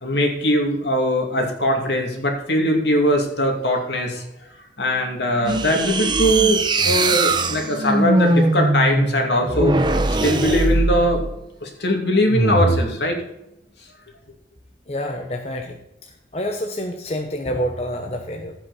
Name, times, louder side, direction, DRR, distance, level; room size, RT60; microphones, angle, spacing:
voice 1, 0.0-4.2 4.8-11.3 11.6-13.2, equal, 70° left, 2 dB, 2.6 m, -21 dB
sound 1, 5.5-11.4 12.3-12.9, right 2 dB, 25° right, 0.8 m, -20 dB
voice 2, 14.9-15.8 16.3-18.5, equal, 35° left, 3 dB, 0.9 m, -27 dB
15.0 x 6.1 x 4.2 m, 0.86 s
head